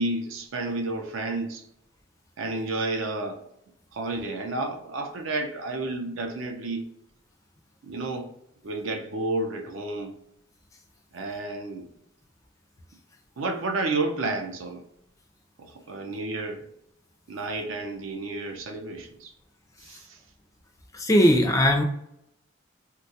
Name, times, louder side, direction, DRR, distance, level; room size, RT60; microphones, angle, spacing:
voice 1, 0.0-1.6 2.4-3.4 3.9-6.8 7.8-8.3 8.6-10.1 11.1-11.9 13.4-14.8 15.6-16.6 17.3-19.3 19.8-20.2, right 2 dB, 65° right, 0.5 m, -31 dB
voice 2, 20.9-21.8, equal, 15° left, 0.3 m, -19 dB
3.7 x 2.2 x 2.7 m
head